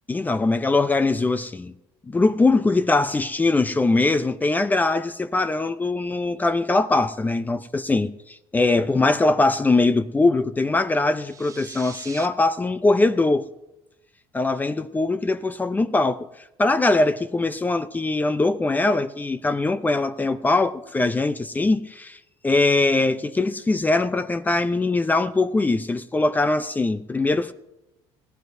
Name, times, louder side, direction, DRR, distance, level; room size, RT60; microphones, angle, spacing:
voice 1, 0.1-1.7 2.1-13.4 14.3-16.3 16.6-27.5, left 2 dB, 15° left, 0.6 m, -22 dB
sound 1, 11.1-12.3, right 6 dB, 30° right, 0.6 m, -41 dB
20.0 x 15.5 x 2.7 m
cardioid pair, 110°, 11 cm